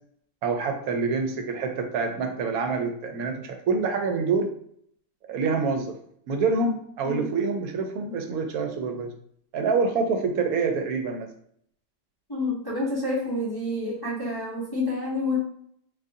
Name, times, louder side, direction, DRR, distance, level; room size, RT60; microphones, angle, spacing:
voice 1, 0.4-4.5 5.3-6.0 6.3-9.1 9.5-11.3, right 4 dB, 85° right, 4 dB, 1.1 m, -26 dB
voice 2, 12.3-15.4, left 2 dB, 20° left, -6 dB, 0.6 m, -28 dB
3.6 x 2.7 x 2.6 m, 0.65 s
omnidirectional pair, 1.5 m